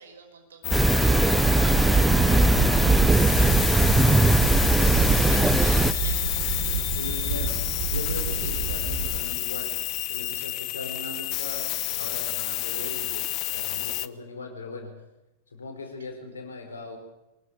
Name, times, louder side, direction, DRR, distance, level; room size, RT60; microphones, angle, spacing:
voice 1, 0.0-2.9 5.2-6.4 10.3-10.5, right 5 dB, 65° right, 5 dB, 5.9 m, -47 dB
sound 1, 0.6-14.1, left 18 dB, 40° left, 0.8 m, -30 dB
sound 2, 0.7-5.9, right 3 dB, 10° right, 0.9 m, -20 dB
sound 3, 1.2-9.2, right 5 dB, 45° right, 6.8 m, -30 dB
voice 2, 4.7-5.6 6.8-15.1 15.5-17.0, left 3 dB, 70° left, 5 dB, 5.0 m, -39 dB
24.5 x 20.5 x 6.8 m, 1.0 s
figure-of-eight pair, 90°, 0 cm